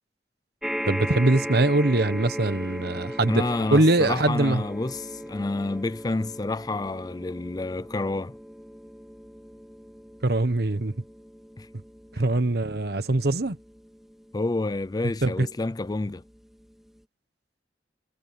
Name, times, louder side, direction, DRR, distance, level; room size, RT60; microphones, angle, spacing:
sound 1, 0.6-15.2 15.9-16.0 16.3-16.4, equal, ahead, 3.5 m, -37 dB
voice 1, 0.9-3.4 3.7-4.6 10.2-10.9 12.2-13.6 15.2-15.5, right 2 dB, 60° right, 1.2 m, -22 dB
voice 2, 3.3-8.3 11.6-11.7 14.3-16.2, left 2 dB, 20° left, 0.4 m, -29 dB
head